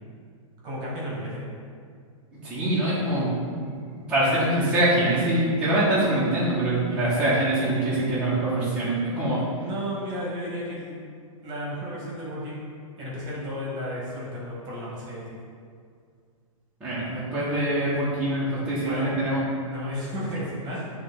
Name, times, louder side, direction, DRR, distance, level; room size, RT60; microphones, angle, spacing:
voice 1, 0.6-1.5 9.6-11.0 11.4-12.7 13.0-15.4 18.8-19.2 19.7-20.8, equal, 25° right, -5 dB, 1.6 m, -33 dB
voice 2, 2.4-3.3 4.1-9.4 16.8-19.4, right 1 dB, 5° right, -12 dB, 1.4 m, -24 dB
8.9 x 3.4 x 4.0 m, 2.2 s
hypercardioid pair, 155°, 17 cm